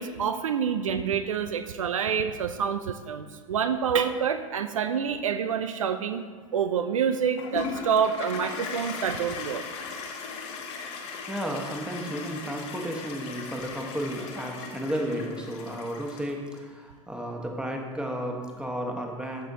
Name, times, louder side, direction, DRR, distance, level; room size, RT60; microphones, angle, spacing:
voice 1, 0.0-6.2 6.5-9.6, right 7 dB, 70° right, 9 dB, 0.4 m, -27 dB
Toilet flush, 7.4-16.6, left 5 dB, 55° left, 1.3 m, -38 dB
voice 2, 11.3-19.5, equal, 5° right, 2 dB, 1.2 m, -33 dB
13.5 x 5.7 x 2.7 m, 1.5 s
figure-of-eight pair, 85°, 17 cm